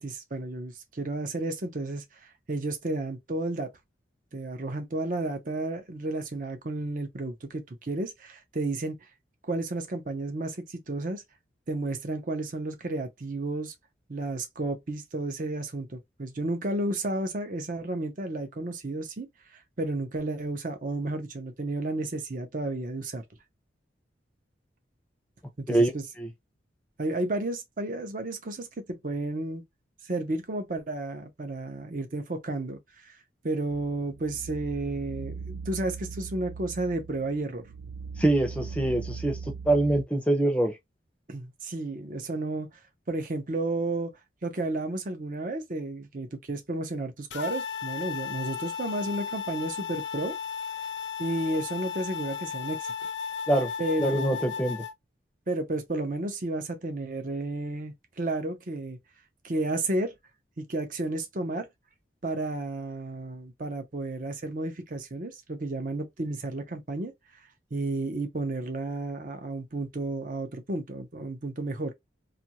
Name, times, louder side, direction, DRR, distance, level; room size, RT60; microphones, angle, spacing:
voice 1, 0.0-3.7 4.3-9.0 9.4-11.2 11.7-13.7 14.1-19.3 19.5-23.2 25.6-26.1 27.0-29.6 30.0-33.2 33.4-37.6 41.3-42.7 43.1-44.1 44.4-50.4 51.2-52.9 53.8-54.4 55.5-59.0 59.4-60.1 60.6-61.7 62.2-67.1 67.7-71.9, right 2 dB, 45° right, 0.6 m, -32 dB
sound 1, 33.7-40.0, right 5 dB, 85° right, 0.3 m, -40 dB
voice 2, 38.2-39.4 39.7-40.7 53.5-53.7 54.0-54.8, right 1 dB, 5° left, 0.6 m, -24 dB
sound 2, 47.3-54.9, left 7 dB, 70° left, 0.5 m, -35 dB
2.7 x 2.4 x 2.9 m
head